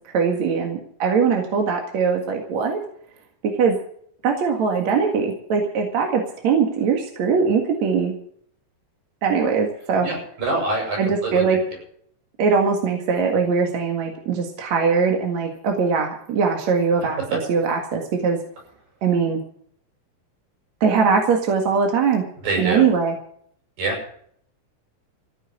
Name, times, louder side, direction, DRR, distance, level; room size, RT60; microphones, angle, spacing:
voice 1, 0.1-2.8 3.4-3.8 4.2-8.1 9.2-10.1 11.0-11.6 12.4-18.4 19.0-19.4 20.8-22.2 22.6-23.1, right 5 dB, 55° right, 2 dB, 2.9 m, -21 dB
voice 2, 10.0-11.6 17.2-17.3 22.4-22.8 23.8-24.0, right 2 dB, 75° right, 0 dB, 9.2 m, -25 dB
15.5 x 9.1 x 8.2 m, 0.62 s
omnidirectional pair, 4.1 m